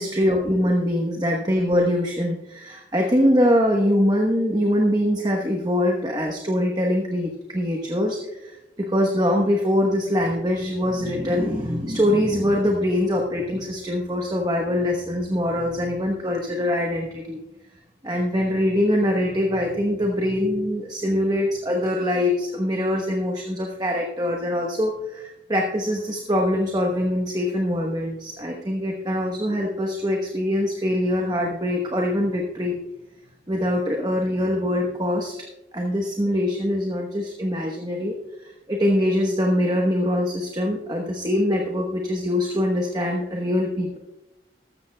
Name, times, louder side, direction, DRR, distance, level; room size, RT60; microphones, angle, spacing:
voice 1, 0.0-17.4 18.0-32.8 33.5-35.3 35.7-38.1 38.4-44.0, left 1 dB, 25° right, 1 dB, 1.0 m, -23 dB
14.0 x 13.5 x 2.2 m, 0.93 s
head